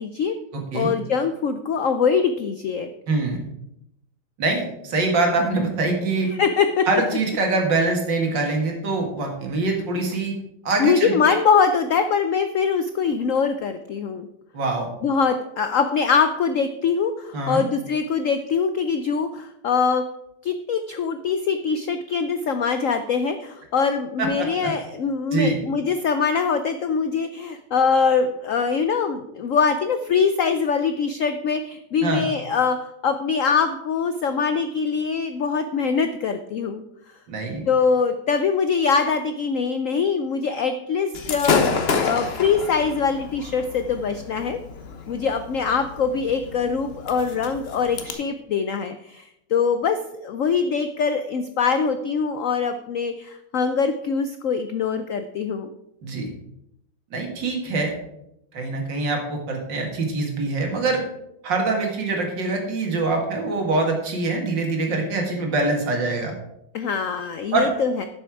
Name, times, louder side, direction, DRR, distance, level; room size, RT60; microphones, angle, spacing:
voice 1, 0.0-0.4 0.7-2.9 6.4-6.9 10.8-14.3 15.0-20.0 20.4-32.8 33.0-36.8 37.7-44.6 45.1-50.0 50.2-55.7 66.7-68.1, left 5 dB, 90° left, 9 dB, 0.7 m, -23 dB
voice 2, 0.5-0.9 3.1-3.4 4.4-6.3 6.9-10.3 10.6-11.3 14.5-14.9 17.3-17.6 24.2-24.7 25.3-25.6 32.0-32.3 37.3-37.6 56.0-56.3 57.1-57.9 58.5-61.0 61.4-66.3 67.5-67.7, right 3 dB, 65° right, 2 dB, 2.5 m, -24 dB
Gunshot gunfire / Fireworks, 41.1-48.1, left 5 dB, 40° left, 1.0 m, -29 dB
11.5 x 6.8 x 4.8 m, 0.82 s
omnidirectional pair, 2.1 m